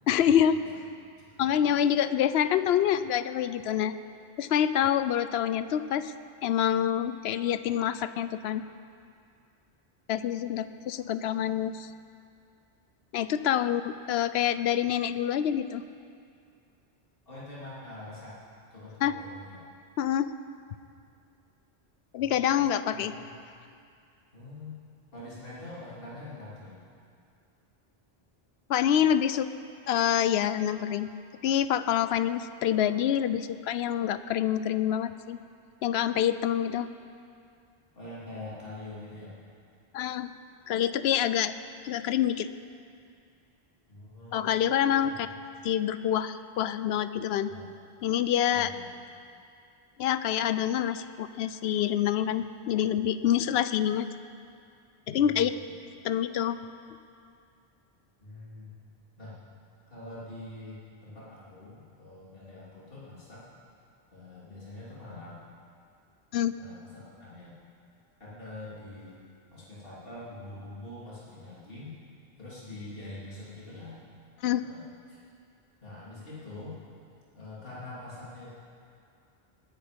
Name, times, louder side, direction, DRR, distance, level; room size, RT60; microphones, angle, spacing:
voice 1, 0.1-0.6 1.4-4.0 4.4-6.1 6.4-8.7 10.1-11.9 13.1-15.8 19.0-19.1 20.0-20.3 22.1-23.1 28.7-29.5 29.9-31.1 31.4-35.4 35.8-36.9 39.9-40.3 40.7-41.5 41.8-42.5 44.3-45.1 45.6-47.5 48.0-48.7 50.0-54.1 55.1-55.5 56.0-56.6 66.3-66.5 74.4-74.7, left 10 dB, 80° left, 13 dB, 0.8 m, -26 dB
voice 2, 1.2-1.7 17.3-18.3 18.7-19.6 22.2-22.6 22.9-23.4 24.3-24.8 25.1-26.8 37.9-39.3 43.9-44.4 45.0-45.1 47.5-47.7 48.5-48.9 55.2-55.7 58.2-58.7 59.2-59.4 59.9-63.4 64.1-65.4 66.6-67.5 68.2-69.2 69.5-71.9 72.4-74.0 74.6-75.2 75.8-76.7 77.3-78.5, left 2 dB, 60° left, -8 dB, 3.2 m, -44 dB
20.0 x 10.0 x 5.2 m, 2.4 s
omnidirectional pair, 1.1 m